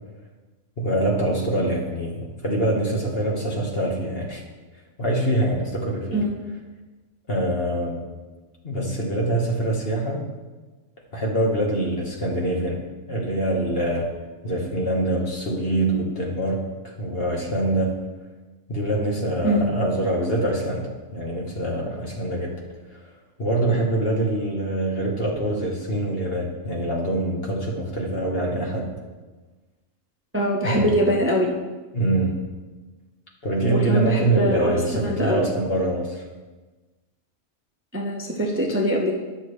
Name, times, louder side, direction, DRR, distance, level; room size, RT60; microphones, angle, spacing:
voice 1, 0.8-4.4 5.0-6.2 7.3-8.0 8.6-10.2 11.1-12.8 13.1-14.1 14.4-18.0 18.7-22.5 23.0-23.1 23.4-28.9 30.6-31.0 31.9-32.4 33.4-36.2, right 1 dB, 50° left, -1 dB, 1.6 m, -24 dB
voice 2, 30.3-31.5 33.7-35.5 37.9-39.2, equal, 10° right, -1 dB, 0.7 m, -23 dB
11.0 x 6.3 x 3.2 m, 1.2 s
omnidirectional pair, 1.3 m